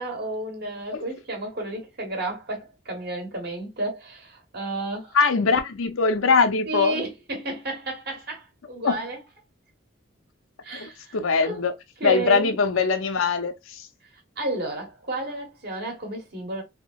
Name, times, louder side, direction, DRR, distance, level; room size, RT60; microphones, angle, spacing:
voice 1, 0.0-5.2 6.7-9.2 10.6-11.6 12.0-12.6 14.4-16.6, right 2 dB, 50° right, 1.4 m, -32 dB
voice 2, 5.1-7.0 8.8-9.0 10.7-11.7 12.0-13.9, left 4 dB, 80° left, 0.6 m, -22 dB
3.6 x 2.9 x 2.3 m
head